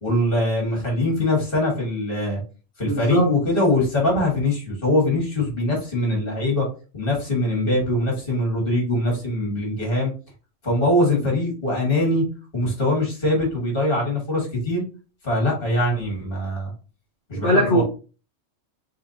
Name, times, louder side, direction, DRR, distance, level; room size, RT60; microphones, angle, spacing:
voice 1, 0.0-2.4 2.8-6.7 6.9-10.1 10.6-12.2 12.5-14.8 15.2-16.7 17.3-17.8, left 1 dB, 45° left, -1 dB, 2.2 m, -22 dB
voice 2, 2.8-3.3 17.4-17.8, equal, 65° left, -4 dB, 1.7 m, -19 dB
5.0 x 3.5 x 2.8 m, 0.35 s
omnidirectional pair, 1.3 m